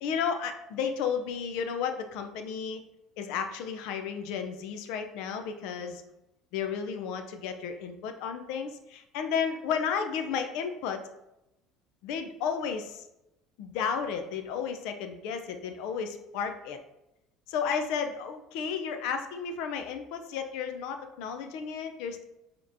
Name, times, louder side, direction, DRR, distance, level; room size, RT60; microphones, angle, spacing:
voice 1, 0.0-2.8 3.2-6.0 6.5-11.1 12.0-13.1 13.6-16.8 17.5-22.2, left 6 dB, 75° left, 7 dB, 0.4 m, -33 dB
5.1 x 2.9 x 2.6 m, 0.90 s
cardioid pair, 135°, 0 cm